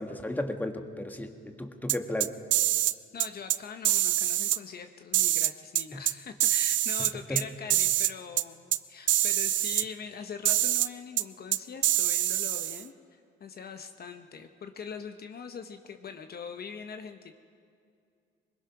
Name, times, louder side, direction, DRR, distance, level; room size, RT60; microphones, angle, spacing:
voice 1, 0.0-2.3 5.9-6.0 7.3-7.4, left 1 dB, 10° left, 6 dB, 1.7 m, -34 dB
sound 1, 1.9-2.9 3.2-3.6 3.9-4.6 5.1-6.1 6.4-7.4 7.7-8.1 8.4-8.5 8.7-8.8 9.1-9.8 10.5-10.9 11.2-11.3 11.5-12.8, right 14 dB, 70° right, 0.5 m, -25 dB
voice 2, 3.1-17.3, left 6 dB, 50° left, 7 dB, 1.1 m, -42 dB
21.0 x 21.0 x 6.0 m, 2.4 s
cardioid pair, 90°, 20 cm